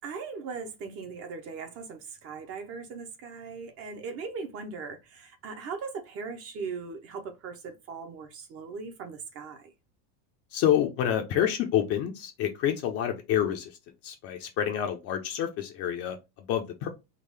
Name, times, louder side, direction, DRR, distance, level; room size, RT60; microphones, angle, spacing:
voice 1, 0.0-9.7, right 5 dB, 30° right, 0.6 m, -39 dB
voice 2, 10.5-16.9, left 10 dB, 35° left, 0.5 m, -28 dB
3.7 x 2.3 x 3.2 m
supercardioid pair, 160°, 47 cm